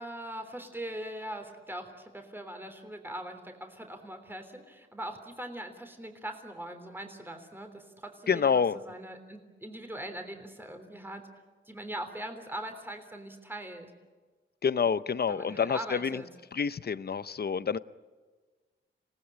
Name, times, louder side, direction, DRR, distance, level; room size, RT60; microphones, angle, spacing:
voice 1, 0.0-11.3 11.6-13.9 15.3-16.3, right 1 dB, 10° right, 6 dB, 3.4 m, -41 dB
voice 2, 8.3-8.8 14.6-16.2 16.5-17.8, left 6 dB, 50° left, 16 dB, 0.7 m, -28 dB
27.0 x 19.0 x 10.0 m, 1.4 s
wide cardioid pair, 80°, 21 cm